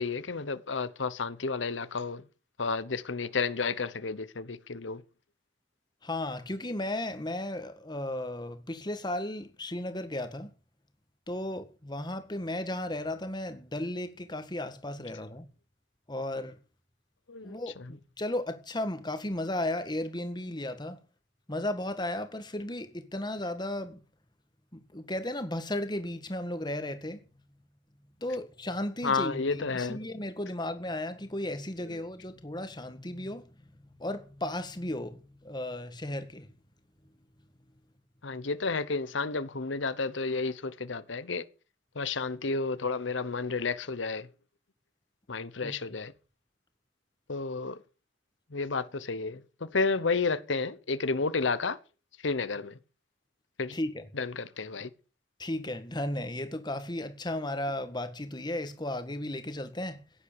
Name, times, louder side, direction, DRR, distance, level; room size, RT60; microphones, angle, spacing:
voice 1, 0.0-2.2 2.6-5.0 17.3-17.8 29.0-30.0 31.9-32.0 38.2-41.4 41.9-44.3 45.3-46.1 47.3-47.8 48.5-51.8 52.2-52.8 53.6-53.8 54.1-54.9, left 4 dB, 85° left, 1.0 m, -31 dB
voice 2, 6.0-10.5 11.3-15.5 16.1-16.6 17.4-21.0 21.5-24.0 24.7-27.2 28.2-33.5 34.0-36.5 45.6-45.7 53.7-54.0 55.4-60.0, left 1 dB, 25° left, 1.7 m, -35 dB
16.0 x 10.0 x 6.8 m
head